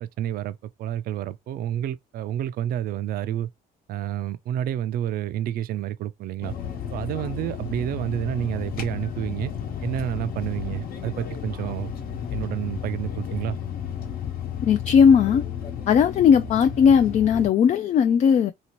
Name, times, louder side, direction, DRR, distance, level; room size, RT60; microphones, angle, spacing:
voice 1, 0.0-3.5 3.9-6.5 6.9-9.5 9.8-11.9 12.3-13.6, right 11 dB, 60° right, 0.4 m, -29 dB
sound 1, 6.4-17.5, left 8 dB, 60° left, 1.0 m, -33 dB
voice 2, 14.6-15.4 15.9-18.5, left 7 dB, 45° left, 0.4 m, -17 dB
2.9 x 2.8 x 2.9 m
cardioid pair, 110°, 17 cm